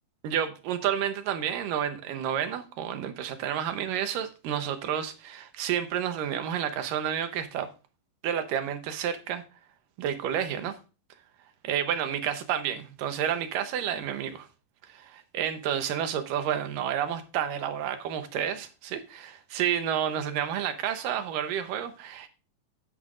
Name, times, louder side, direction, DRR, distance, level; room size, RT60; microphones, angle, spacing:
voice 1, 0.2-7.7 8.2-9.4 10.0-10.7 11.6-14.5 14.9-22.3, right 9 dB, 80° right, 2.6 m, -30 dB
10.0 x 9.8 x 2.5 m
omnidirectional pair, 3.9 m